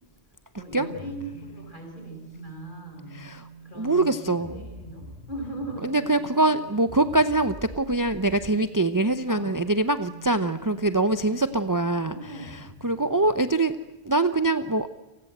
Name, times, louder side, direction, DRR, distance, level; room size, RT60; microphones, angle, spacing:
voice 1, 0.6-3.3 3.6-6.2 9.3-9.5 11.9-12.6, right 1 dB, 45° left, 3 dB, 6.8 m, -39 dB
sound 1, 0.7-13.6, right 2 dB, 40° right, 2.4 m, -46 dB
voice 2, 3.1-3.4 3.8-4.5 5.8-12.2 12.8-13.7 14.0-14.9, right 2 dB, 20° right, 11 dB, 0.8 m, -23 dB
30.0 x 19.5 x 8.0 m, 1.1 s
omnidirectional pair, 1.2 m